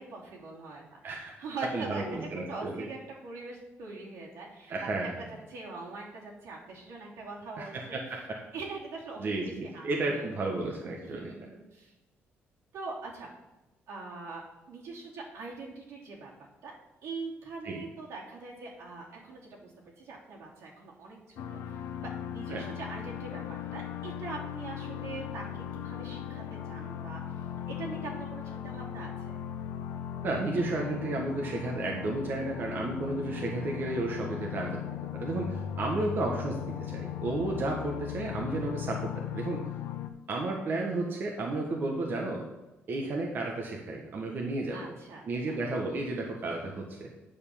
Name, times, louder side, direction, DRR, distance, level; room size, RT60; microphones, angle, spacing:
voice 1, 0.0-4.8 5.5-8.0 8.5-10.5 11.0-11.9 12.7-13.3 13.9-16.7 17.0-19.7 20.0-21.6 22.0-27.2 27.7-29.4 44.7-45.6, right 3 dB, 80° right, -3 dB, 3.1 m, -42 dB
voice 2, 1.7-2.9 4.7-5.1 7.6-8.2 9.2-11.3 17.6-17.8 22.5-22.6 30.2-39.6 40.3-42.4 42.9-44.9 45.3-47.1, right 2 dB, 50° right, 0 dB, 1.4 m, -33 dB
sound 1, 21.4-40.1, left 10 dB, 90° left, 0.8 m, -38 dB
9.1 x 5.4 x 7.1 m, 1.0 s
cardioid pair, 140°, 5 cm